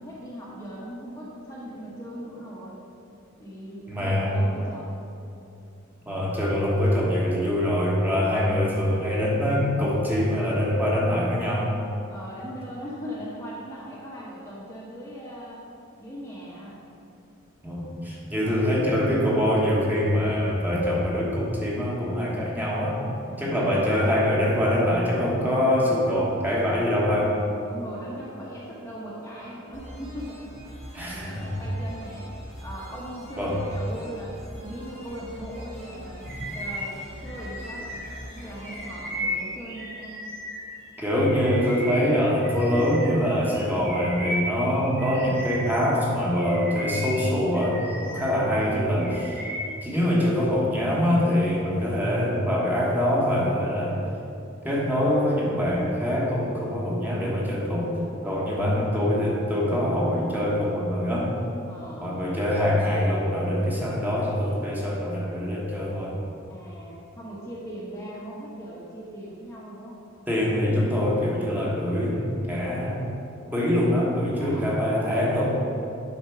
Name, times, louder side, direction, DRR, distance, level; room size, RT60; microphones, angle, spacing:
voice 1, 0.0-2.8 3.4-5.0 12.1-15.7 16.0-16.8 18.4-18.9 23.3-23.8 27.6-32.2 32.6-37.9 38.3-40.2 58.6-59.0 61.7-62.1 66.5-70.0 73.8-75.2, equal, 15° left, -6 dB, 0.9 m, -39 dB
voice 2, 3.9-4.4 6.0-11.7 17.6-23.0 23.4-27.4 30.9-31.4 33.4-33.6 41.0-49.4 49.8-54.0 54.6-57.9 58.2-61.3 62.0-66.2 70.3-73.0 73.5-75.4, left 1 dB, 10° right, -5 dB, 1.2 m, -24 dB
sound 1, 29.7-40.3, equal, 30° right, 1.4 m, -43 dB
Bird vocalization bird call bird song, 36.2-40.8 41.2-45.9 46.3-48.4 48.7-49.8, equal, 45° right, 2.0 m, -35 dB
8.1 x 4.4 x 5.7 m, 2.7 s
head